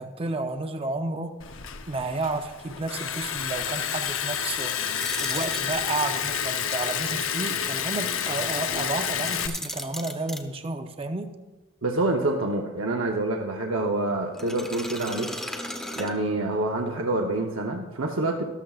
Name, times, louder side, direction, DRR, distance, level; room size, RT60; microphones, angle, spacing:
voice 1, 0.0-1.3 1.9-4.8 5.2-11.3, right 3 dB, 25° right, 6 dB, 0.6 m, -31 dB
Liquid, 1.4-9.5, left 8 dB, 70° left, 0.8 m, -29 dB
sound 1, 5.0-6.1 9.2-10.4 14.3-16.6, left 1 dB, 5° left, 0.9 m, -36 dB
voice 2, 11.8-15.4 16.0-18.4, right 2 dB, 70° right, 1 dB, 0.9 m, -27 dB
13.5 x 12.5 x 2.4 m, 1.2 s
head